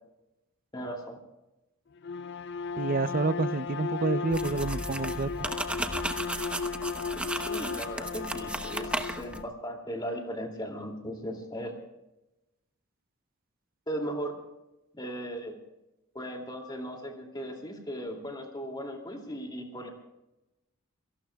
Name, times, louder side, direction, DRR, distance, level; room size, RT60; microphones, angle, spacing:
voice 1, 0.7-1.2 7.3-11.8 13.9-14.3 14.9-15.5 16.1-19.9, equal, 20° left, 2 dB, 2.6 m, -37 dB
Bowed string instrument, 2.0-9.5, left 5 dB, 55° left, 0.4 m, -35 dB
voice 2, 2.8-5.4, right 3 dB, 40° right, 15 dB, 0.5 m, -29 dB
sound 1, 4.3-9.4, right 1 dB, 5° right, 0.9 m, -35 dB
27.5 x 18.5 x 2.3 m, 0.97 s
head